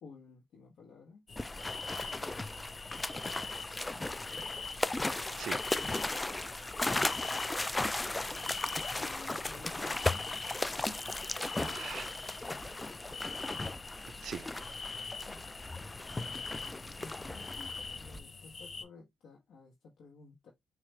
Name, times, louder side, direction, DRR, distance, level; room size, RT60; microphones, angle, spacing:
voice 1, 0.0-1.3 9.0-10.2 15.2-15.6 17.0-20.5, left 4 dB, 70° left, 1.0 m, -54 dB
sound 1, 1.3-18.8, left 5 dB, 40° left, 0.7 m, -44 dB
sound 2, 1.4-18.2, left 2 dB, 15° left, 0.3 m, -36 dB
voice 2, 1.9-2.2 5.4-6.3 11.4-12.1 14.2-14.8, right 8 dB, 60° right, 0.4 m, -45 dB
4.4 x 2.4 x 3.2 m
cardioid pair, 90°, 0 cm